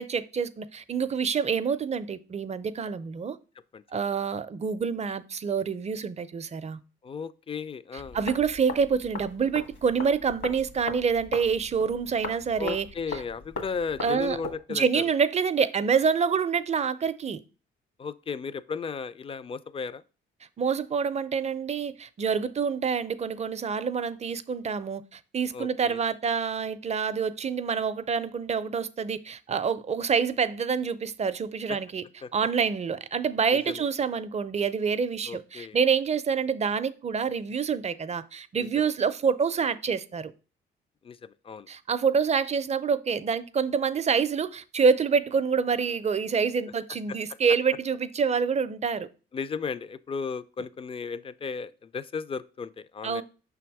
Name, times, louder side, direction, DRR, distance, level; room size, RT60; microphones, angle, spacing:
voice 1, 0.0-3.4 3.9-6.8 8.1-12.9 14.0-14.4 14.7-17.4 20.6-32.0 32.3-40.3 41.7-49.1 53.0-53.2, right 6 dB, 35° right, 0.5 m, -27 dB
voice 2, 7.0-8.2 12.6-15.0 18.0-20.0 25.5-26.0 31.7-31.8 32.2-32.3 33.5-33.9 35.2-35.8 38.5-38.9 41.0-41.7 47.1-47.2 49.3-53.2, left 5 dB, 30° left, 0.4 m, -35 dB
sound 1, 8.0-14.6, left 3 dB, 70° left, 1.6 m, -40 dB
5.8 x 3.5 x 4.6 m
cardioid pair, 90°, 20 cm